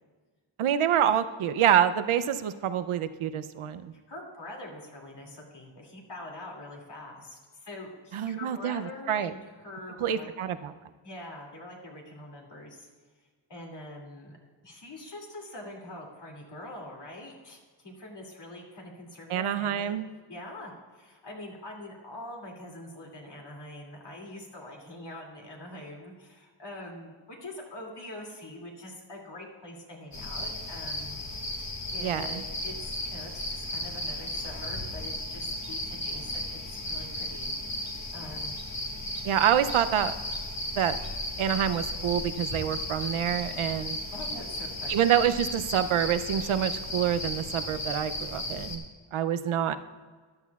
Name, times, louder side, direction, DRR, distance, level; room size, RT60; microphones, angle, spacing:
voice 1, 0.6-3.9 8.1-9.3 10.0-10.7 19.3-20.1 32.0-32.4 39.2-40.1 40.8-41.0 41.4-44.0 44.9-48.8 49.1-49.7, right 9 dB, 85° right, 11 dB, 0.7 m, -27 dB
voice 2, 4.1-10.3 11.0-12.9 13.5-14.4 14.6-20.0 20.3-31.2 31.9-38.6 44.1-45.1, left 1 dB, 55° left, -1 dB, 2.6 m, -44 dB
sound 1, 30.1-48.8, left 1 dB, 35° left, 1.7 m, -35 dB
14.0 x 11.5 x 2.4 m, 1.5 s
wide cardioid pair, 100°, 48 cm